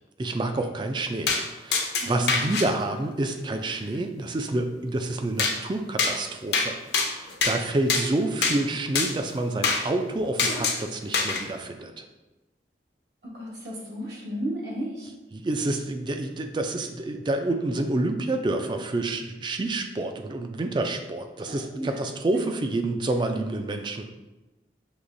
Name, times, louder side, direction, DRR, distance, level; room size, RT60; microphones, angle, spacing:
voice 1, 0.2-1.3 1.6-12.0 15.3-24.1, right 2 dB, 25° right, 6 dB, 0.3 m, -28 dB
sound 1, 1.3-1.4 1.7-2.7 5.4-5.5 6.0-6.1 6.5-6.7 6.9-7.6 7.9-8.0 8.4-8.6 9.0-9.1 9.6-9.8 10.4-10.8 11.1-11.4, left 4 dB, 70° left, 0.6 m, -24 dB
voice 2, 2.0-2.7 13.2-15.1 21.5-22.0, equal, 75° right, -4 dB, 1.1 m, -34 dB
6.4 x 3.0 x 2.5 m, 1.1 s
head